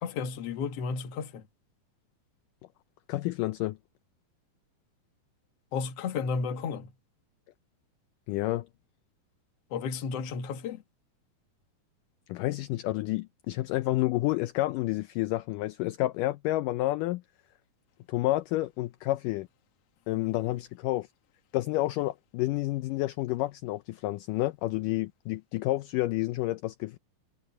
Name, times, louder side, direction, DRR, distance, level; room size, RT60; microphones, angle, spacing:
voice 1, 0.0-1.4 5.7-6.9 9.7-10.8, left 5 dB, 55° left, 2.0 m, -33 dB
voice 2, 3.1-3.8 8.3-8.7 12.3-17.2 18.1-19.5 20.1-21.1 21.5-27.0, left 17 dB, 80° left, 2.0 m, -29 dB
omnidirectional pair, 4.2 m